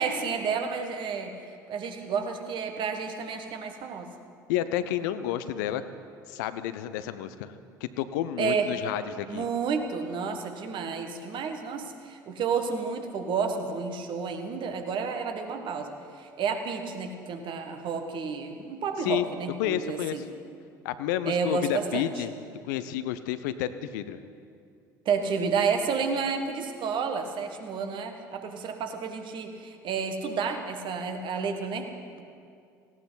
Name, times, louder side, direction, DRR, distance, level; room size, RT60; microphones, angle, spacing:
voice 1, 0.0-1.4 1.7-4.1 8.4-8.7 9.3-20.2 21.3-22.1 25.1-32.2, right 5 dB, 50° right, 5 dB, 1.6 m, -31 dB
voice 2, 4.5-5.8 6.3-7.6 7.8-9.5 19.0-19.3 19.6-20.3 20.8-22.3 22.6-24.2, left 12 dB, 65° left, 12 dB, 0.7 m, -30 dB
18.0 x 16.0 x 4.1 m, 2.4 s
figure-of-eight pair, 65°, 11 cm